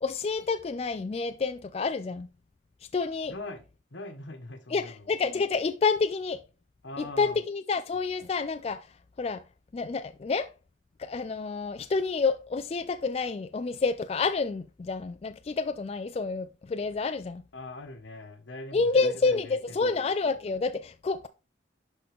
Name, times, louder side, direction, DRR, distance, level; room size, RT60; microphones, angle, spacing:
voice 1, 0.0-2.3 2.9-3.3 4.7-6.4 7.0-9.4 9.7-10.5 11.0-17.4 18.7-21.3, left 4 dB, 35° left, 0.3 m, -29 dB
voice 2, 3.3-3.6 3.9-5.1 6.8-7.4 17.5-20.0, left 2 dB, 80° left, 1.5 m, -42 dB
11.5 x 3.8 x 3.6 m
head